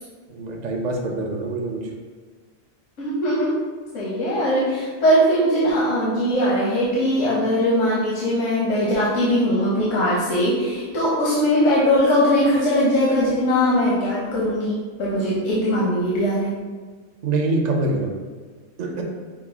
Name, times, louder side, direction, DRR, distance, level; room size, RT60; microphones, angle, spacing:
voice 1, 0.3-1.9 17.2-18.1 18.8-19.0, right 2 dB, 55° right, 1 dB, 0.5 m, -24 dB
voice 2, 3.0-3.5 3.9-16.5, equal, 90° left, -6 dB, 1.2 m, -20 dB
6.0 x 2.0 x 3.4 m, 1.5 s
omnidirectional pair, 1.3 m